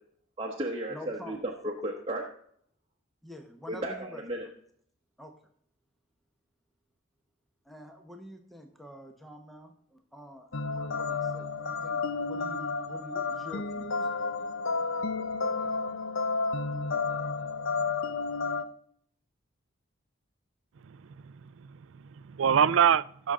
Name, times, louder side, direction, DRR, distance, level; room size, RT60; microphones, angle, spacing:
voice 1, 0.4-2.2 3.7-4.5, right 1 dB, 25° right, 1.2 m, -34 dB
voice 2, 0.9-1.4 3.2-4.5 5.2-5.3 7.6-14.1, left 1 dB, ahead, 0.9 m, -47 dB
sound 1, 10.5-18.6, left 4 dB, 75° left, 0.7 m, -31 dB
voice 3, 20.9-23.3, right 8 dB, 65° right, 0.4 m, -26 dB
16.5 x 6.4 x 3.7 m
head